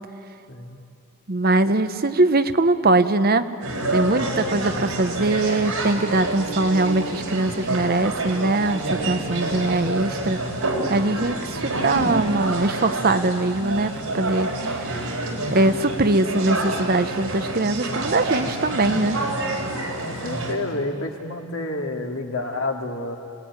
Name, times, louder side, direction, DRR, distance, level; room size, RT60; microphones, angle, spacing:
voice 1, 0.5-0.8 4.1-4.7 20.0-23.2, left 2 dB, 70° left, 2 dB, 2.4 m, -30 dB
voice 2, 1.3-3.5 3.9-10.4 10.9-14.9 15.5-19.2, right 2 dB, 45° right, 11 dB, 0.8 m, -22 dB
sound 1, 3.6-20.5, right 2 dB, 90° right, 4.0 m, -28 dB
27.5 x 20.0 x 9.7 m, 2.6 s
head